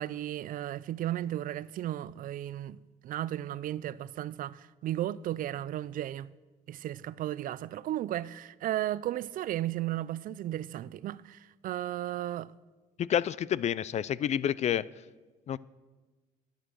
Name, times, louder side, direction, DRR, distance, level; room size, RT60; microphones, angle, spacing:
voice 1, 0.0-6.3 6.7-12.5, right 13 dB, 55° right, 0.4 m, -35 dB
voice 2, 13.0-14.8 15.5-15.6, left 10 dB, 40° left, 0.4 m, -29 dB
12.5 x 9.0 x 6.2 m
cardioid pair, 110°, 17 cm